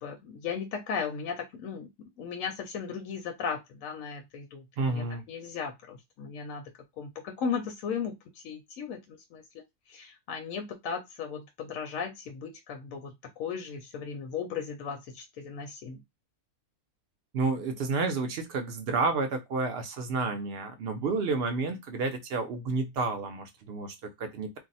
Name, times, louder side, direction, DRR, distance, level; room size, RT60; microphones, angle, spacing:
voice 1, 0.0-6.6 7.0-8.2 8.4-9.6 9.9-16.0, left 6 dB, 70° left, 5 dB, 0.9 m, -36 dB
voice 2, 4.8-5.2 17.3-24.5, right 3 dB, 70° right, 5 dB, 0.6 m, -30 dB
2.6 x 2.0 x 3.9 m, 0.19 s
omnidirectional pair, 1.6 m